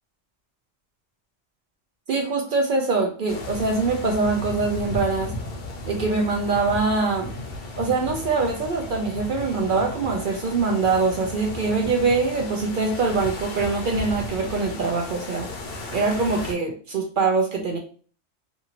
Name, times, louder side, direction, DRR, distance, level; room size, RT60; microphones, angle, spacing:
voice 1, 2.1-5.3 5.9-7.3 7.8-15.5 15.9-17.8, right 4 dB, 60° right, 1 dB, 0.6 m, -23 dB
sound 1, 3.3-16.5, left 2 dB, 60° left, 0.7 m, -35 dB
2.6 x 2.6 x 2.8 m, 0.43 s
omnidirectional pair, 1.2 m